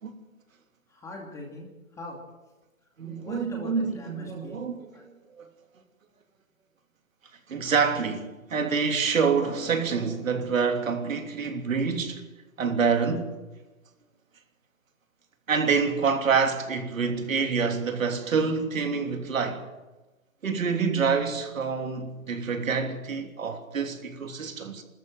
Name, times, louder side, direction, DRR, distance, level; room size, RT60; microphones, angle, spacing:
voice 1, 0.9-2.2 3.2-5.1, left 2 dB, 5° left, 2.5 m, -42 dB
voice 2, 3.0-4.8 5.4-5.5 7.5-12.2 12.6-13.3 15.5-19.6 20.4-24.8, right 5 dB, 70° right, 3.3 m, -27 dB
26.5 x 13.5 x 7.8 m
hypercardioid pair, 155°, 42 cm